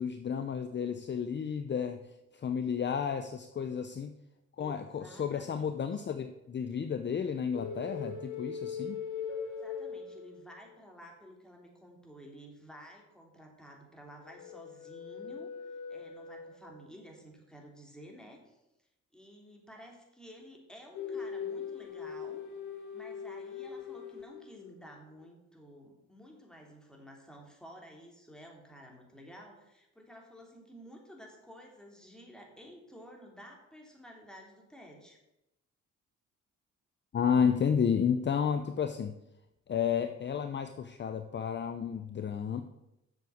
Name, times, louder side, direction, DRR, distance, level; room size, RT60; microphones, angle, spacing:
voice 1, 0.0-2.0 2.3-4.1 4.6-9.0 37.1-39.1 39.7-42.6, left 7 dB, 35° left, 8 dB, 0.7 m, -31 dB
voice 2, 4.6-6.0 9.6-15.5 15.9-18.6 19.1-22.4 22.9-35.2, equal, ahead, 0 dB, 3.2 m, -52 dB
sound 1, 7.5-10.7 14.2-16.8 20.9-24.8, left 6 dB, 70° left, 1.6 m, -41 dB
8.0 x 6.9 x 7.9 m, 0.89 s
cardioid pair, 90°, 30 cm